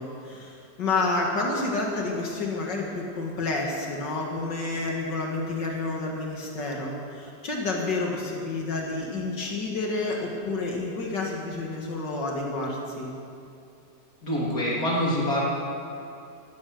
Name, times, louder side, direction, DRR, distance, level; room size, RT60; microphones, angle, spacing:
voice 1, 0.0-13.1, left 3 dB, 65° left, -1 dB, 2.4 m, -29 dB
voice 2, 14.2-15.4, equal, 50° left, -5 dB, 3.6 m, -25 dB
15.0 x 14.0 x 6.4 m, 2.6 s
omnidirectional pair, 2.0 m